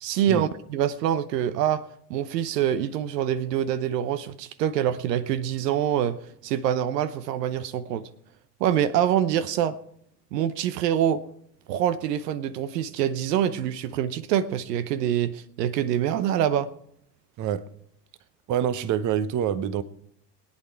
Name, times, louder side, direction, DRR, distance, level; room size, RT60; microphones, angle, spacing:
voice 1, 0.0-8.1 8.6-9.8 10.3-11.3 11.7-16.7, right 10 dB, 80° right, 0.9 m, -25 dB
voice 2, 17.4-17.7 18.5-19.8, right 9 dB, 40° right, 0.9 m, -26 dB
22.0 x 8.7 x 4.5 m
hypercardioid pair, 95°, 48 cm